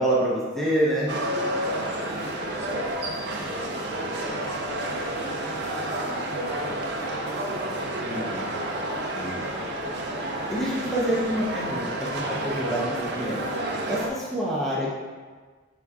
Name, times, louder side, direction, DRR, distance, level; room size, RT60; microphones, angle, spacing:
voice 1, 0.0-1.1 8.0-8.5 9.1-9.4 10.5-13.4 13.9-14.9, equal, ahead, -6 dB, 0.6 m, -27 dB
voice 2, 1.1-3.0 3.3-7.9 9.0-10.5 10.9-11.5 12.0-12.2 14.2-14.3 14.6-14.7, equal, 40° left, -8 dB, 1.5 m, -41 dB
sound 1, 1.1-14.1, right 1 dB, 50° right, 0.5 m, -30 dB
5.7 x 3.6 x 2.3 m, 1.4 s
head